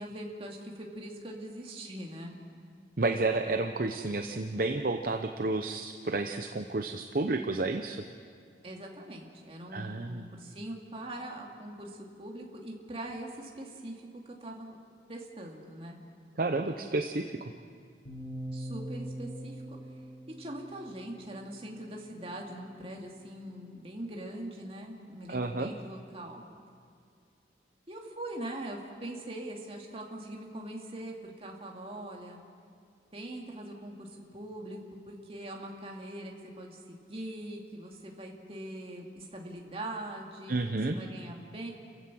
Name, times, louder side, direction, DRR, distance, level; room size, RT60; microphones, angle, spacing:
voice 1, 0.0-2.4 8.6-14.8 15.1-16.0 18.5-19.8 20.4-26.4 27.9-32.4 33.1-34.8 35.1-40.5 40.8-41.7, right 1 dB, 35° right, 0 dB, 2.4 m, -42 dB
voice 2, 3.0-8.0 9.7-10.3 16.4-17.5 25.3-25.7 40.5-41.0, right 2 dB, 50° right, 5 dB, 0.8 m, -31 dB
sound 1, 18.1-22.1, right 1 dB, 80° left, 7.1 m, -42 dB
29.5 x 15.5 x 6.2 m, 2.2 s
head